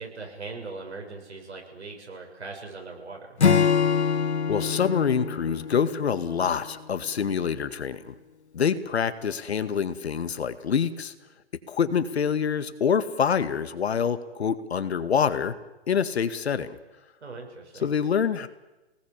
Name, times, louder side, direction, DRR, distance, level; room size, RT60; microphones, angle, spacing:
voice 1, 0.0-3.3 17.2-17.9, right 3 dB, 85° right, 2 dB, 7.2 m, -40 dB
Acoustic guitar / Strum, 3.4-6.9, left 6 dB, 90° left, 3.1 m, -25 dB
voice 2, 4.5-8.1 8.5-11.1 11.7-15.5 15.9-16.8 17.8-18.5, left 7 dB, 70° left, 11 dB, 2.0 m, -26 dB
28.0 x 19.0 x 7.5 m, 1.0 s
hypercardioid pair, 160°, 33 cm